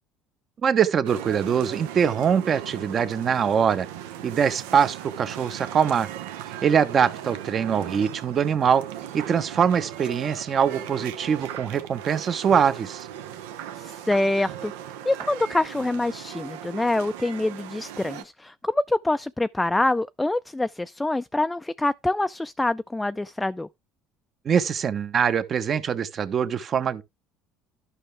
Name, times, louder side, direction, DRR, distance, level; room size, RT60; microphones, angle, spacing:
voice 1, 0.6-3.9 4.2-6.1 6.6-8.8 9.1-13.1 24.4-27.0, right 7 dB, 45° right, 1.1 m, -23 dB
sound 1, 1.0-18.2, right 11 dB, 90° right, 1.0 m, -38 dB
voice 2, 13.8-14.7 15.1-23.7, left 2 dB, 10° left, 0.4 m, -25 dB
11.5 x 5.7 x 3.4 m
supercardioid pair, 90°, 0 cm